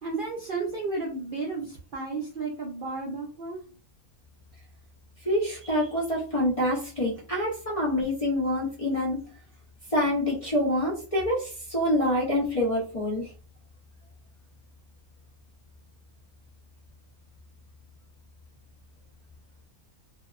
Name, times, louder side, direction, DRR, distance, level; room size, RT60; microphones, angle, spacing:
voice 1, 0.0-3.6, right 3 dB, 60° right, -2 dB, 0.5 m, -33 dB
voice 2, 5.2-9.2 9.9-13.3, left 1 dB, 45° left, -7 dB, 0.4 m, -26 dB
2.7 x 2.1 x 2.4 m, 0.37 s
omnidirectional pair, 1.5 m